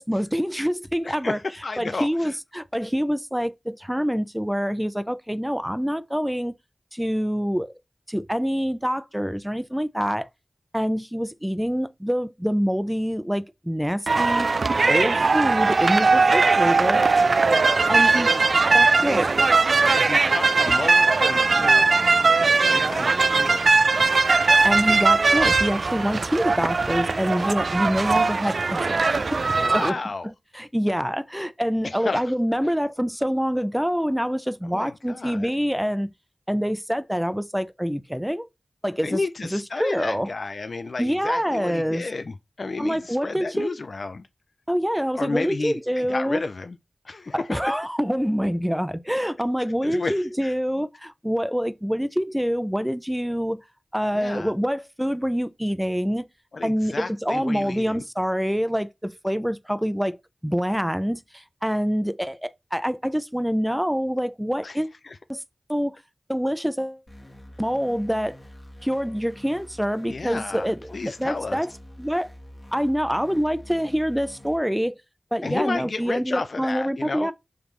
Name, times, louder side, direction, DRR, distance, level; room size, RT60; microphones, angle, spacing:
voice 1, 0.0-1.4 1.8-6.5 6.9-7.7 8.1-10.3 10.7-14.5 14.9-17.0 17.9-18.3 18.7-19.3 24.6-30.0 30.2-36.1 36.5-38.5 38.8-39.2 39.5-40.3 41.0-42.1 42.8-43.7 44.7-46.4 47.3-53.6 53.9-56.3 56.6-60.2 60.4-64.9 65.3-65.4 65.7-66.0 66.3-67.0 67.6-68.4 68.8-71.7 72.0-72.3 72.7-75.0 75.3-77.3, equal, 5° right, 0.4 m, -26 dB
voice 2, 1.1-2.3 19.9-21.9 22.4-23.7 29.6-30.3 31.8-32.3 34.7-35.5 39.0-44.3 45.1-46.8 47.0-47.6 49.8-50.5 54.1-54.5 56.5-58.0 64.6-64.8 65.0-65.2 70.1-71.6 75.4-77.3, left 3 dB, 75° left, 0.3 m, -32 dB
sound 1, 14.1-29.9, right 4 dB, 80° right, 0.3 m, -20 dB
sound 2, 67.1-74.6, equal, 40° left, 1.5 m, -46 dB
5.0 x 3.4 x 3.1 m
wide cardioid pair, 45°, 0 cm